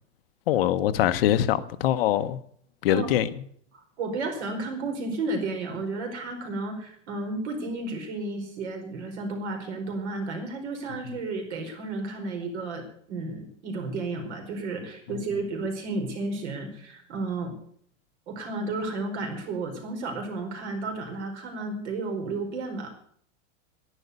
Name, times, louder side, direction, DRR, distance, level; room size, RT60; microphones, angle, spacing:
voice 1, 0.5-2.4 2.8-3.3, left 12 dB, 50° left, 0.8 m, -23 dB
voice 2, 4.0-17.5 18.3-22.9, right 3 dB, 65° right, 4.8 m, -32 dB
11.0 x 11.0 x 8.1 m
supercardioid pair, 175°, 37 cm